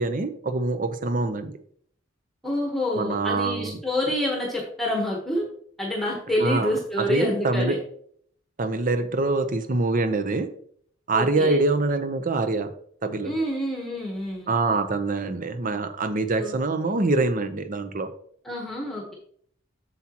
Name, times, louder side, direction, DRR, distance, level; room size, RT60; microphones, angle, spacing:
voice 1, 0.0-1.5 2.9-3.8 6.4-7.8 8.6-10.5 11.1-12.7 13.0-13.3 14.5-18.1, right 3 dB, 45° right, 9 dB, 0.8 m, -25 dB
voice 2, 2.4-5.5 5.8-7.8 11.1-11.6 13.2-14.5 16.4-16.5 18.4-19.1, left 1 dB, ahead, -2 dB, 1.2 m, -27 dB
7.9 x 7.3 x 3.0 m, 0.62 s
head